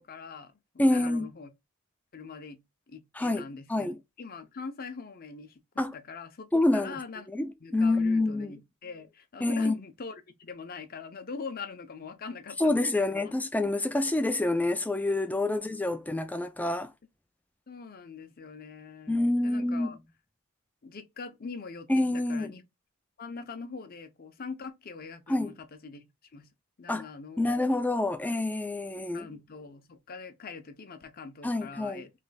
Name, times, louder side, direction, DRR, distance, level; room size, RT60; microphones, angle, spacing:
voice 1, 0.0-1.5 2.1-2.6 2.9-7.3 7.6-13.3 15.5-15.8 17.7-19.2 19.4-20.0 20.8-22.6 23.2-26.1 26.3-26.5 26.8-27.6 29.1-32.1, left 4 dB, 40° left, 0.6 m, -43 dB
voice 2, 0.8-1.3 3.2-4.0 5.8-5.9 6.5-7.0 7.3-8.5 9.4-9.8 12.6-16.9 19.1-19.9 21.9-22.5 25.3-25.5 26.9-27.1 27.4-29.3 31.4-32.0, left 2 dB, 5° left, 0.4 m, -27 dB
3.2 x 3.0 x 4.0 m
head